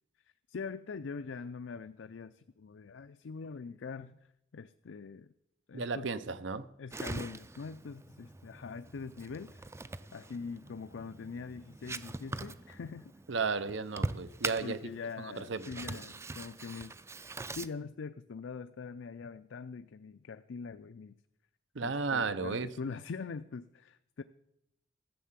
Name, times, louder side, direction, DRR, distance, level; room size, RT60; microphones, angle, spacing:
voice 1, 0.5-4.2 4.5-5.3 5.7-6.1 6.8-9.7 10.1-13.1 14.6-17.0 17.5-21.1 21.8-24.2, left 5 dB, 80° left, 0.4 m, -43 dB
voice 2, 5.7-6.7 13.3-14.8 15.2-15.7 21.7-22.7, right 4 dB, 75° right, 0.7 m, -34 dB
sound 1, 6.9-17.7, right 2 dB, 15° right, 0.4 m, -42 dB
13.5 x 7.6 x 7.3 m
head